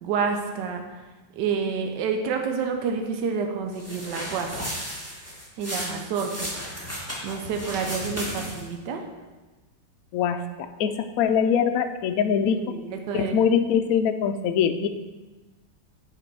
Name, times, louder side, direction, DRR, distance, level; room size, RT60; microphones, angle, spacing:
voice 1, 0.0-0.8 1.4-4.7 5.6-6.5 7.2-9.0 12.6-13.4, right 5 dB, 70° right, 4 dB, 1.3 m, -29 dB
sound 1, 3.7-8.7, equal, 10° right, 1.4 m, -34 dB
voice 2, 10.1-12.6 13.1-14.9, left 7 dB, 80° left, 8 dB, 0.8 m, -23 dB
7.7 x 5.0 x 4.6 m, 1.2 s
omnidirectional pair, 2.1 m